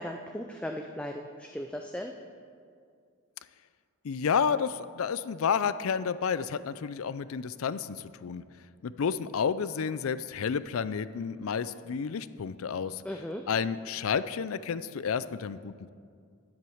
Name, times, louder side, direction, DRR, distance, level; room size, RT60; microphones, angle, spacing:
voice 1, 0.0-2.1 13.0-13.4, equal, 5° left, 3 dB, 0.4 m, -37 dB
voice 2, 4.0-8.4 8.8-13.0 13.5-15.9, left 6 dB, 75° left, 15 dB, 0.4 m, -30 dB
10.5 x 8.0 x 7.0 m, 2.2 s
head